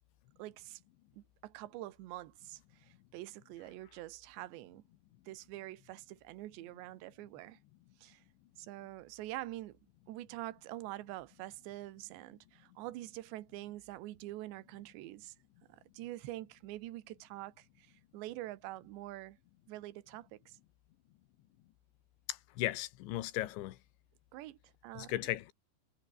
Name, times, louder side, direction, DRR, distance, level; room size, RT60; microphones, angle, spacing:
voice 1, 0.4-0.8 1.1-4.8 5.3-7.6 8.0-8.2 8.6-9.8 10.1-15.3 15.7-19.4 19.7-20.6 24.3-25.1, right 16 dB, 80° right, 3.4 m, -46 dB
voice 2, 22.3-23.8 25.0-25.5, left 15 dB, 80° left, 3.6 m, -36 dB
omnidirectional pair, 5.3 m